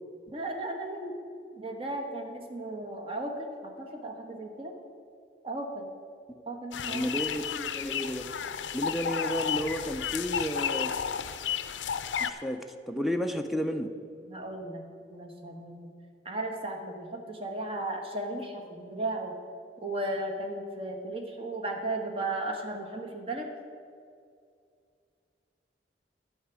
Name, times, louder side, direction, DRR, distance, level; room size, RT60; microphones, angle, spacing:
voice 1, 0.3-1.2 1.5-4.7 5.4-5.9 6.5-7.1 14.3-15.9 16.2-19.4 19.8-23.5, right 2 dB, 30° right, 2 dB, 1.2 m, -35 dB
sound 1, 6.7-12.3, left 8 dB, 90° left, 0.5 m, -32 dB
voice 2, 6.9-8.3 8.7-10.9 12.2-13.9, equal, ahead, 6 dB, 0.5 m, -32 dB
11.5 x 4.8 x 8.1 m, 2.3 s
head